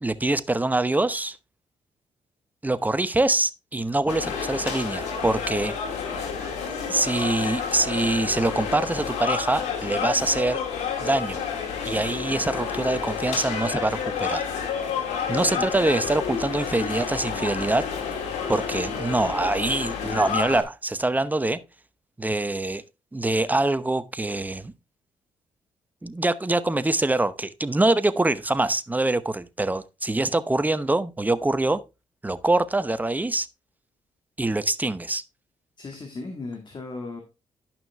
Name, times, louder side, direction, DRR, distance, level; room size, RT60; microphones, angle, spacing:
voice 1, 0.0-1.4 2.6-5.7 6.9-10.6 11.0-11.4 11.8-14.4 15.3-17.9 18.5-21.6 22.2-22.8 23.1-24.7 26.0-31.8 32.2-33.5 34.4-35.2, right 2 dB, 15° right, 0.8 m, -24 dB
sound 1, 4.1-20.6, left 6 dB, 90° left, 2.1 m, -30 dB
voice 2, 15.3-15.6 35.8-37.2, left 3 dB, 45° left, 2.0 m, -35 dB
11.0 x 5.9 x 3.5 m
cardioid pair, 65°, 11 cm